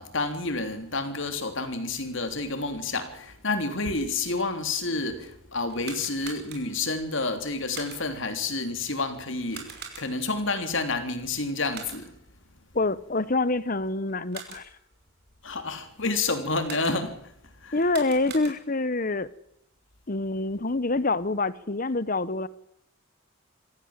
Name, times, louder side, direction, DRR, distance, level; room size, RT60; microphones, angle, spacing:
voice 1, 0.0-12.1 15.4-17.2 17.6-17.8, left 3 dB, 60° left, 3.4 m, -29 dB
sound 1, 5.7-6.9 7.7-8.3 9.5-10.4 11.7-12.3 14.1-14.8 16.6-17.2 17.7-18.9, right 6 dB, 50° right, 5.4 m, -43 dB
voice 2, 12.7-14.7 17.7-19.3 20.1-22.5, left 2 dB, 40° left, 1.0 m, -26 dB
25.5 x 15.5 x 7.5 m
head